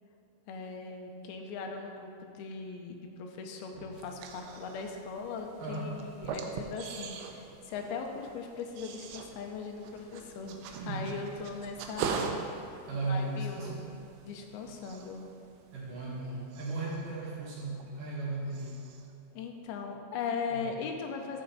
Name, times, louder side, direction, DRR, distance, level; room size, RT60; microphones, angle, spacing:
voice 1, 0.5-12.4 13.0-15.2 19.3-21.4, left 5 dB, 80° left, 3 dB, 2.3 m, -39 dB
sound 1, 3.9-18.2 18.5-19.1, right 6 dB, 80° right, 2.4 m, -42 dB
voice 2, 5.6-6.0 10.6-11.2 12.8-14.0 15.7-18.9 20.5-20.7, right 2 dB, 60° right, -5 dB, 2.5 m, -36 dB
13.5 x 5.2 x 4.0 m, 2.7 s
omnidirectional pair, 5.0 m